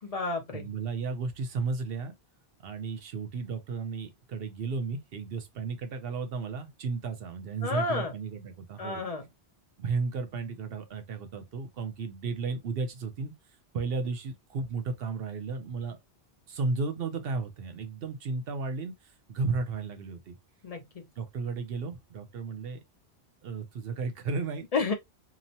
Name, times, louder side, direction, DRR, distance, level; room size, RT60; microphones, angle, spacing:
voice 1, 0.0-0.7 7.6-8.1 8.8-9.2 20.6-21.1 24.7-24.9, left 3 dB, 45° left, 0.5 m, -31 dB
voice 2, 0.5-2.2 2.6-9.0 9.8-13.3 13.7-16.0 16.5-20.4 21.2-22.8 23.4-24.6, right 4 dB, 65° right, 0.8 m, -34 dB
2.9 x 2.1 x 2.7 m
omnidirectional pair, 1.1 m